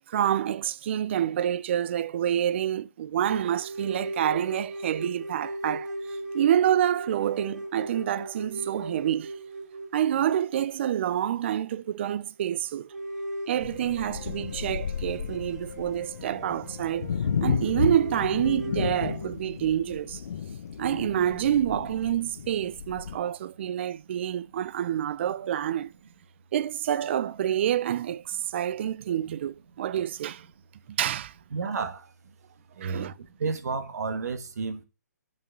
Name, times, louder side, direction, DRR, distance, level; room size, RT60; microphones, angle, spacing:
voice 1, 0.1-9.3 9.9-12.9 13.5-17.1 17.4-20.2 20.8-25.9 26.5-30.5 30.9-31.3 32.8-33.1, right 10 dB, 40° right, 0.4 m, -27 dB
sound 1, 3.3-11.9 12.3-12.4 12.9-19.3, right 1 dB, 75° right, 2.1 m, -38 dB
sound 2, 13.6-23.2, left 7 dB, 55° left, 0.9 m, -33 dB
voice 2, 31.5-32.1 32.8-34.8, right 4 dB, 60° right, 1.4 m, -31 dB
6.9 x 6.2 x 7.0 m
hypercardioid pair, 150°, 10 cm